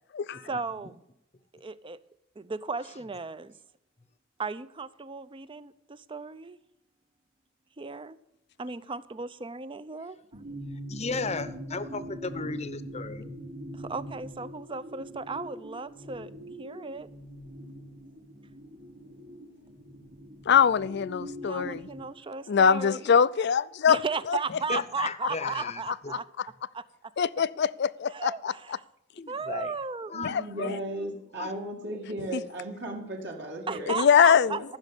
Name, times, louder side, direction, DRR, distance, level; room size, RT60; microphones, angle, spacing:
voice 1, 0.4-0.9 1.5-2.0 2.4-3.5 4.4-6.6 7.8-8.2 8.6-10.4 13.7-16.3 16.6-17.1 21.4-23.0 23.9-26.2 26.7-26.8 28.1-28.8 29.3-30.1 33.7-34.8, right 4 dB, 25° right, 0.5 m, -35 dB
sound 1, 10.3-22.0, equal, 80° right, 3.2 m, -42 dB
voice 2, 10.9-13.3 24.7-26.1 29.2-29.7 30.1-30.8 31.3-31.5, left 4 dB, 35° left, 0.8 m, -35 dB
voice 3, 20.5-21.9 22.5-24.0 24.3-24.4 27.2-28.5 30.2-30.8 32.3-32.4 34.0-34.6, left 7 dB, 55° left, 0.4 m, -23 dB
voice 4, 30.1-34.0 34.4-34.6, right 1 dB, 60° right, 2.1 m, -36 dB
15.0 x 6.3 x 8.3 m
head